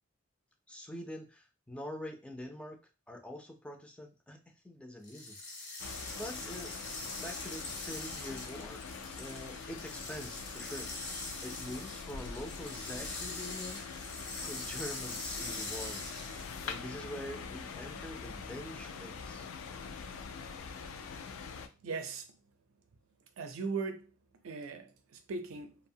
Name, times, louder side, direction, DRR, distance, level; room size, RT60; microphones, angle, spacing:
voice 1, 0.7-2.8 3.1-5.9 6.1-8.8 9.2-10.9 11.4-13.8 14.4-16.0 16.6-19.5, left 1 dB, 5° left, 0.3 m, -45 dB
sound 1, 5.0-16.7, left 2 dB, 55° left, 0.7 m, -43 dB
sound 2, 5.8-21.7, left 5 dB, 80° left, 0.3 m, -44 dB
voice 2, 21.8-22.2 23.4-24.0 24.4-25.7, right 4 dB, 80° right, 0.4 m, -38 dB
2.7 x 2.0 x 2.6 m
head